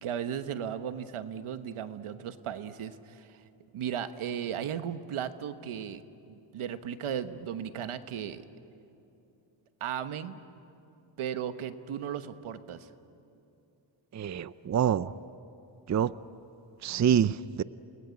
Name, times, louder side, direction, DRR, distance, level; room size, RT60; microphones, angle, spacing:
voice 1, 0.0-3.4 3.7-6.0 6.3-8.4 9.8-10.4 11.2-12.9, right 9 dB, 85° right, 10 dB, 1.3 m, -36 dB
voice 2, 14.1-15.1 15.9-16.1 16.8-17.6, right 8 dB, 35° right, 16 dB, 0.5 m, -26 dB
29.5 x 20.0 x 9.8 m, 2.8 s
cardioid pair, 90°, 49 cm